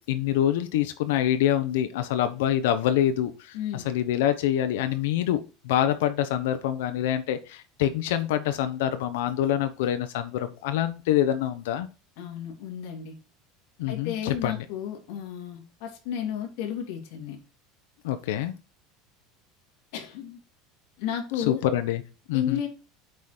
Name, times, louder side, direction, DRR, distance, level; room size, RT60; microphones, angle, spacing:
voice 1, 0.1-11.9 13.8-14.6 18.0-18.5 21.4-22.0 22.3-22.6, left 11 dB, 90° left, 9 dB, 1.0 m, -26 dB
voice 2, 3.5-3.8 12.2-13.2 13.9-17.4 19.9-20.4 21.0-21.6 22.3-22.7, left 9 dB, 65° left, 1 dB, 2.9 m, -32 dB
8.0 x 5.2 x 4.4 m, 0.32 s
supercardioid pair, 155°, 0 cm